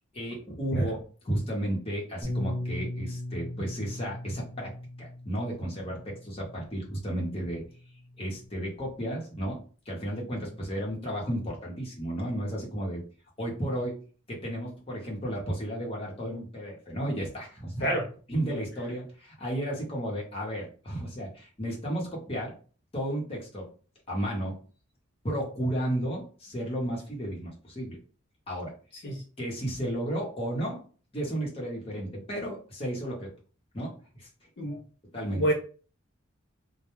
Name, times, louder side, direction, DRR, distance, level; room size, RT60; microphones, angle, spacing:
voice 1, 0.1-7.6 8.2-9.6 9.9-13.0 13.4-13.9 14.3-17.9 18.3-22.5 22.9-23.7 24.1-24.5 25.2-28.0 28.5-28.7 29.4-30.8 31.1-33.3 33.7-33.9 34.2-34.3 35.1-35.4, right 1 dB, 30° left, 0.8 m, -33 dB
voice 2, 0.7-0.9 17.8-18.1 29.0-29.2 34.6-34.8 35.3-35.5, right 1 dB, 55° left, 0.5 m, -28 dB
Bass guitar, 2.2-6.7 7.5-8.5, left 1 dB, 10° right, 0.5 m, -38 dB
2.1 x 2.1 x 3.0 m
head